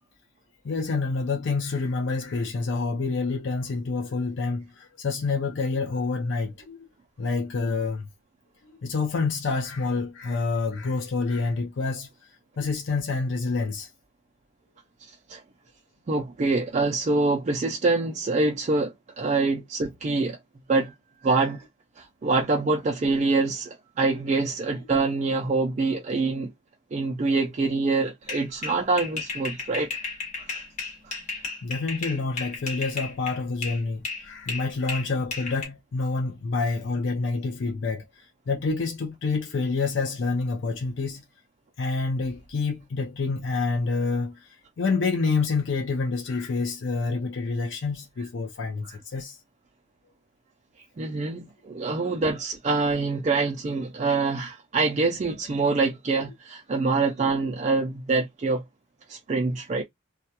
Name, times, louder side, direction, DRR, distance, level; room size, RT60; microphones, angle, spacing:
voice 1, 0.6-6.9 7.2-8.1 8.8-12.1 12.6-13.9 31.6-41.2 41.8-49.4, left 4 dB, 60° left, 0.5 m, -28 dB
voice 2, 16.1-20.4 20.7-20.9 21.2-21.6 22.0-26.5 26.9-29.9 30.4-30.6 51.0-58.6 59.1-59.8, right 3 dB, 35° right, 0.3 m, -25 dB
sound 1, 28.3-33.8 34.1-35.7, left 4 dB, 35° left, 1.0 m, -34 dB
2.3 x 2.1 x 2.7 m
head